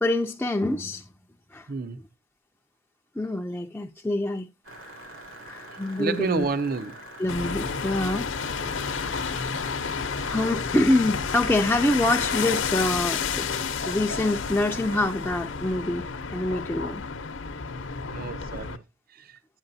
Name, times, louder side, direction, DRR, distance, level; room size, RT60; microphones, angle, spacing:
voice 1, 0.0-1.1 1.5-1.7 3.2-4.5 5.4-6.5 7.2-8.3 9.0-9.4 10.3-13.5 13.9-16.1 16.3-17.0, left 1 dB, 10° left, 0.4 m, -26 dB
voice 2, 1.7-2.0 6.0-7.0 18.1-18.8 19.2-19.3, right 4 dB, 45° right, 0.5 m, -29 dB
sound 1, 4.6-10.6, right 1 dB, 85° right, 3.4 m, -44 dB
sound 2, 7.3-18.8, left 5 dB, 60° left, 0.7 m, -30 dB
9.0 x 8.8 x 2.7 m
head